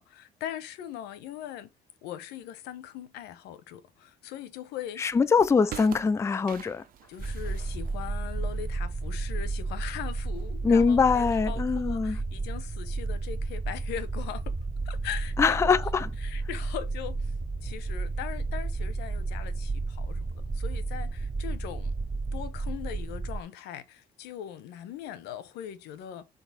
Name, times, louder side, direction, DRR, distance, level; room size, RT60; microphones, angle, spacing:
voice 1, 0.0-1.7 2.0-5.1 7.1-14.5 14.8-15.7 16.2-17.3 17.6-21.9 22.3-26.3, left 10 dB, 90° left, 1.0 m, -40 dB
voice 2, 5.0-6.8 10.6-12.2 15.4-16.1, left 5 dB, 15° left, 0.4 m, -23 dB
sound 1, 5.1-11.5, right 11 dB, 55° right, 0.8 m, -48 dB
sound 2, 7.2-23.4, right 3 dB, 20° right, 0.7 m, -32 dB
4.2 x 4.0 x 5.6 m
cardioid pair, 110°, 17 cm